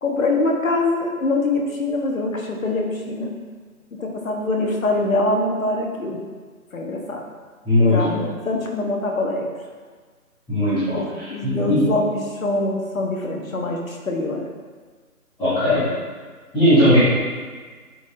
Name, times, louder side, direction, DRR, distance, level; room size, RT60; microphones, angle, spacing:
voice 1, 0.0-3.3 4.0-6.2 6.7-7.2 7.9-9.5 11.0-14.4, left 2 dB, 65° left, 1 dB, 1.3 m, -24 dB
voice 2, 7.6-8.2 10.5-11.8 15.4-15.8 16.5-17.0, left 1 dB, 5° left, -22 dB, 1.2 m, -18 dB
9.1 x 4.2 x 2.7 m, 1.5 s
figure-of-eight pair, 155°, 45 cm